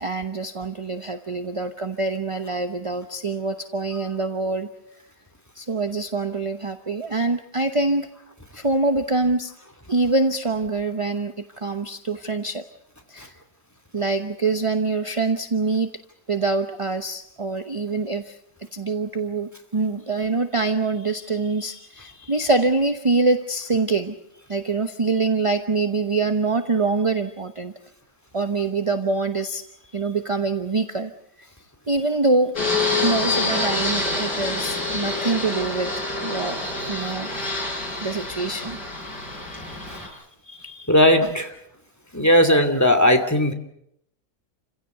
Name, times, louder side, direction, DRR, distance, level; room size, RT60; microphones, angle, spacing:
voice 1, 0.0-4.7 5.6-8.1 8.5-9.5 9.9-12.6 13.1-13.3 13.9-15.9 16.3-18.4 18.7-24.1 24.5-27.7 28.3-29.6 29.9-31.1 31.4-31.5 31.9-32.5 33.0-37.3 38.0-38.8 39.0-40.2 40.5-40.9, right 3 dB, 25° right, 7 dB, 0.7 m, -25 dB
Fixed-wing aircraft airplane, 32.5-40.1, left 2 dB, 60° left, 6.8 m, -27 dB
voice 2, 40.9-41.5 42.1-43.5, left 1 dB, 10° left, 6 dB, 2.3 m, -17 dB
29.0 x 16.0 x 8.0 m, 0.77 s
omnidirectional pair, 2.0 m